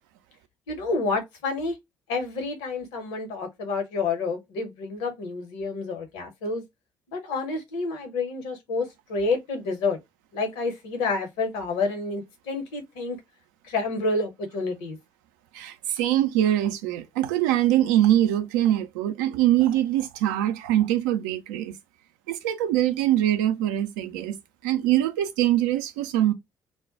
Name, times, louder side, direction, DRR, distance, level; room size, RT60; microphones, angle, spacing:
voice 1, 0.7-1.8 2.1-6.6 7.1-10.0 10.3-13.2 13.7-15.0, left 3 dB, 70° left, 0.8 m, -29 dB
voice 2, 15.5-21.7 22.3-24.4 24.6-26.3, right 12 dB, 75° right, 0.4 m, -23 dB
2.1 x 2.1 x 3.8 m
figure-of-eight pair, 50°, 10 cm